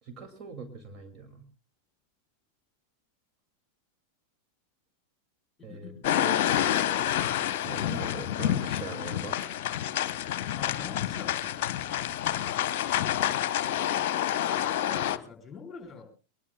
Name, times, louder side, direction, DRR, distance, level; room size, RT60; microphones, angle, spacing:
voice 1, 0.0-1.4 5.6-5.9 6.2-6.4 7.6-9.4, right 4 dB, 25° right, 3 dB, 2.3 m, -41 dB
voice 2, 5.6-6.1 10.5-11.6 13.7-16.1, left 5 dB, 15° left, 3 dB, 4.5 m, -45 dB
sound 1, 6.0-15.2, left 11 dB, 50° left, 0.9 m, -28 dB
22.0 x 20.5 x 2.2 m, 0.34 s
figure-of-eight pair, 90°, 0 cm